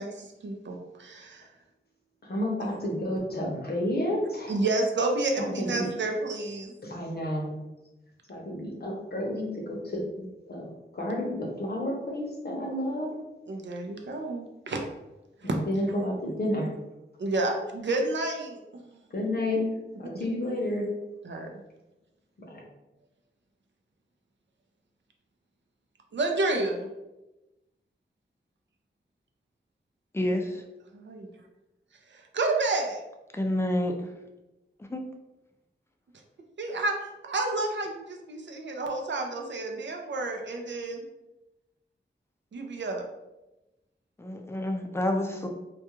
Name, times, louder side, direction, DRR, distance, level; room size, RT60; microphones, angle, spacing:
voice 1, 0.0-1.5 4.5-6.7 13.5-14.8 15.4-15.6 17.2-19.0 20.1-20.3 21.2-21.6 26.1-26.9 30.2-30.3 30.9-31.3 32.1-33.0 36.6-37.0 37.2-41.0 42.5-43.0, right 2 dB, 70° right, 3 dB, 0.4 m, -30 dB
voice 2, 2.2-4.6 5.6-5.9 6.8-7.6 8.3-13.1 15.4-16.7 19.1-19.7 20.0-20.9 22.5-22.6, left 1 dB, 55° left, -1 dB, 0.7 m, -31 dB
voice 3, 30.1-30.6 33.3-33.9 34.9-35.0 44.2-45.5, left 1 dB, 15° left, 3 dB, 0.3 m, -28 dB
2.3 x 2.2 x 2.9 m, 0.99 s
wide cardioid pair, 85°, 19 cm